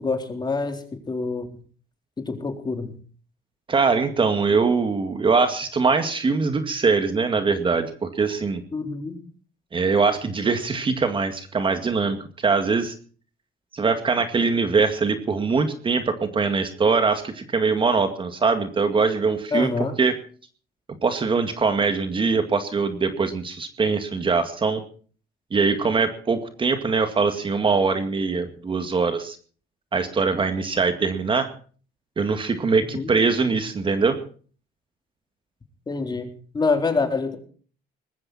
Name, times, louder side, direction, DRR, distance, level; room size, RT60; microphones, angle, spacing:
voice 1, 0.0-1.5 2.2-2.9 8.7-9.2 19.5-20.0 32.9-33.1 35.9-36.3 36.5-37.4, left 4 dB, 25° left, 5 dB, 3.8 m, -26 dB
voice 2, 3.7-8.6 9.7-12.9 13.7-20.1 21.0-24.8 25.5-29.4 29.9-31.5 32.2-34.2, right 4 dB, 30° right, 8 dB, 2.1 m, -22 dB
20.5 x 15.0 x 4.3 m, 0.43 s
cardioid pair, 110°, 17 cm